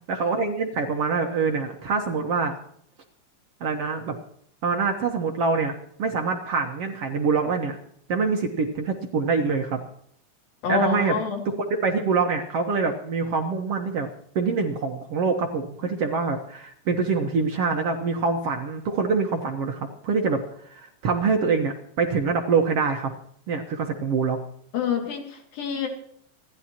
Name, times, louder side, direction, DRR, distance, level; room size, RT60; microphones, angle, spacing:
voice 1, 0.1-2.5 3.6-4.2 4.6-5.7 6.0-7.8 8.1-9.8 10.7-11.1 11.8-14.1 14.4-20.4 20.7-23.1 23.5-24.4, right 4 dB, 60° right, 3 dB, 1.7 m, -25 dB
voice 2, 10.6-11.4 23.9-24.0 24.7-25.9, left 6 dB, 90° left, 3 dB, 4.3 m, -27 dB
28.0 x 11.5 x 3.0 m, 0.67 s
omnidirectional pair, 4.0 m